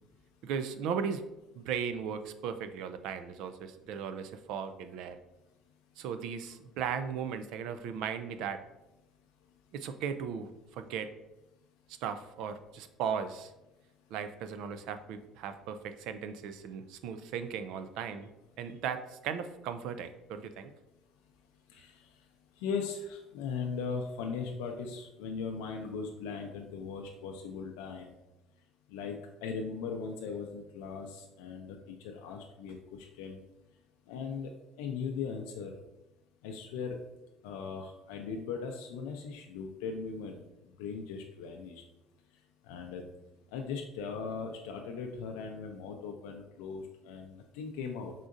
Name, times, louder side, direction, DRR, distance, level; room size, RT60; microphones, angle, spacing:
voice 1, 0.4-1.2 1.6-5.2 6.0-8.6 9.7-11.1 12.0-13.5 14.1-18.3 18.6-20.7, right 7 dB, 70° right, 9 dB, 0.4 m, -37 dB
voice 2, 22.6-28.1 28.9-33.4 34.1-34.5 34.8-35.7 36.4-37.0 37.4-40.5 40.8-41.8 42.7-43.0 43.5-48.1, left 5 dB, 85° left, 3 dB, 0.5 m, -39 dB
4.9 x 3.7 x 2.5 m, 0.96 s
supercardioid pair, 100°, 0 cm